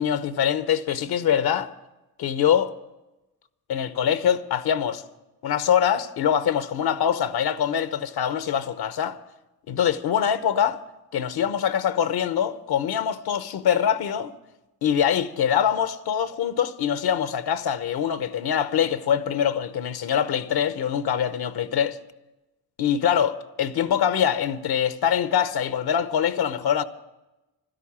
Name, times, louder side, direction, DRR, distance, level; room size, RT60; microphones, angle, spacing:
voice 1, 0.0-1.7 2.2-2.7 3.7-5.0 5.4-9.2 9.7-10.8 11.1-14.3 14.8-22.0 22.8-26.8, left 8 dB, 70° left, 1.0 m, -24 dB
12.5 x 11.0 x 8.6 m
supercardioid pair, 70°, 39 cm